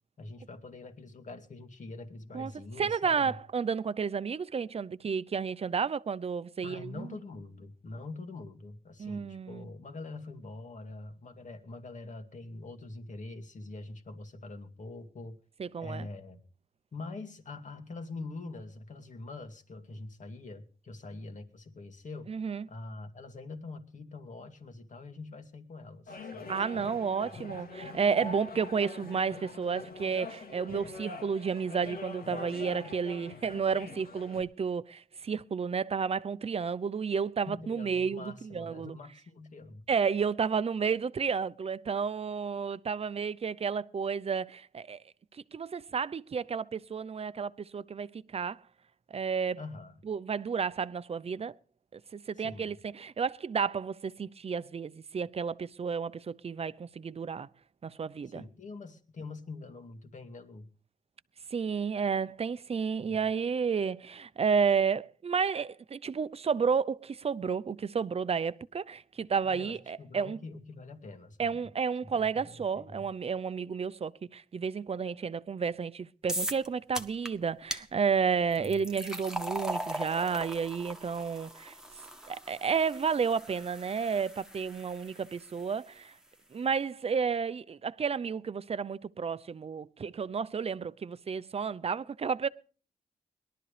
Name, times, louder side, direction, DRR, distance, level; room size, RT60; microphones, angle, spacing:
voice 1, 0.2-3.4 6.6-15.4 15.8-16.4 16.9-22.3 22.7-26.9 37.5-39.8 49.6-50.0 52.4-52.7 58.3-60.7 63.1-63.2 69.4-71.7 72.1-73.0 78.6-78.8, left 3 dB, 55° left, 2.3 m, -44 dB
voice 2, 2.8-7.1 9.0-9.7 15.6-16.1 22.3-22.7 26.5-39.0 39.9-45.0 45.3-48.6 49.1-49.6 50.1-51.5 51.9-57.5 57.8-58.4 61.5-70.4 71.4-81.7 82.3-86.2 86.5-92.5, right 6 dB, 40° right, 0.6 m, -31 dB
sound 1, 26.1-34.4, left 3 dB, 85° left, 2.2 m, -44 dB
sound 2, 76.3-76.7 77.0-77.3 77.7-77.8 78.5-85.6, equal, 5° right, 1.5 m, -39 dB
21.5 x 12.0 x 3.4 m
wide cardioid pair, 105°, 15 cm